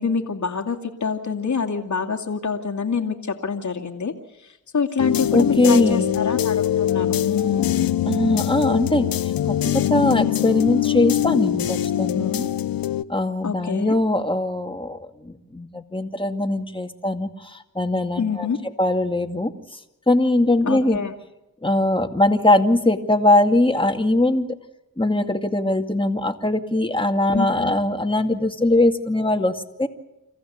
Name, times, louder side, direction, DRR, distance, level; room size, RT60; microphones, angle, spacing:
voice 1, 0.0-4.1 4.4-7.9 13.4-14.0 18.2-18.6 20.6-21.1 27.3-27.7, left 5 dB, 55° left, 1 dB, 2.4 m, -26 dB
sound 1, 5.0-13.0, left 11 dB, 80° left, 0.8 m, -23 dB
voice 2, 5.3-6.1 8.1-12.5 13.1-18.5 18.8-19.5 20.1-21.0 21.6-24.5 25.0-29.9, left 1 dB, 15° left, 6 dB, 2.3 m, -21 dB
27.5 x 14.5 x 8.3 m, 0.96 s
cardioid pair, 45°, 34 cm